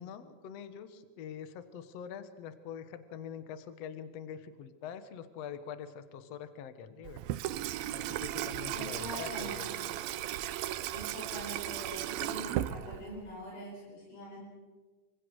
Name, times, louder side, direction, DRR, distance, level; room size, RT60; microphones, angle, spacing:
voice 1, 0.0-7.2 7.9-9.8, left 8 dB, 55° left, 10 dB, 2.0 m, -44 dB
Water tap faucet / Sink (filling or washing), 7.0-13.3, right 13 dB, 80° right, 2.5 m, -36 dB
voice 2, 8.7-10.0 10.9-14.5, equal, 85° left, -2 dB, 6.6 m, -44 dB
26.5 x 25.0 x 4.8 m, 1.4 s
omnidirectional pair, 4.2 m